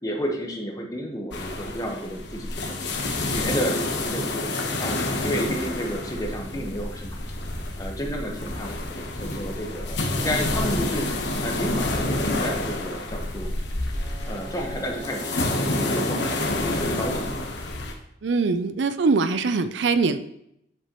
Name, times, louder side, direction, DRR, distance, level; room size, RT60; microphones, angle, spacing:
voice 1, 0.0-2.5 3.3-7.1 7.8-11.1 11.4-13.5 14.3-17.2, equal, 20° left, 1 dB, 1.1 m, -31 dB
sound 1, 1.3-17.9, left 2 dB, 65° left, 1.1 m, -28 dB
sound 2, 7.0-13.4, equal, 45° left, 1.5 m, -40 dB
Bowed string instrument, 13.9-17.6, right 3 dB, 25° right, 2.8 m, -41 dB
voice 2, 18.2-20.2, right 4 dB, 70° right, 11 dB, 0.5 m, -22 dB
7.8 x 7.7 x 3.0 m, 0.78 s
head